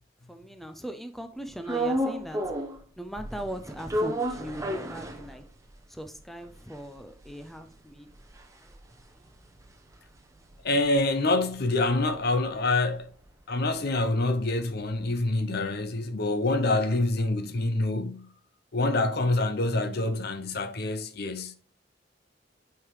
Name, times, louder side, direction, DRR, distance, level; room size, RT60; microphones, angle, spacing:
voice 1, 0.3-2.5 3.0-5.4 5.9-8.1 8.6-8.8, equal, ahead, 0.5 m, -40 dB
sound 1, 1.6-2.8 3.2-5.7 6.1-6.2 6.4-10.9 11.2-15.3, right 1 dB, 15° right, 0.9 m, -34 dB
voice 2, 10.6-13.1 13.5-18.3 18.7-21.6, left 2 dB, 50° left, 0.8 m, -26 dB
8.9 x 4.8 x 3.2 m
head